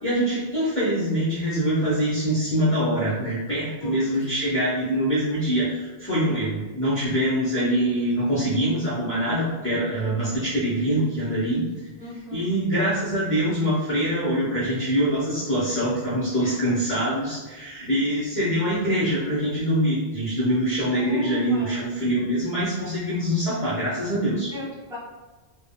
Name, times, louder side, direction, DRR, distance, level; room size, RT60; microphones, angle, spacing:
voice 1, 0.0-11.9 12.3-24.5, equal, 15° left, -9 dB, 0.5 m, -24 dB
voice 2, 12.0-12.5 16.4-16.8 20.9-21.8 24.5-25.0, left 2 dB, 5° right, -11 dB, 1.2 m, -36 dB
3.5 x 2.1 x 2.2 m, 1.2 s
omnidirectional pair, 1.1 m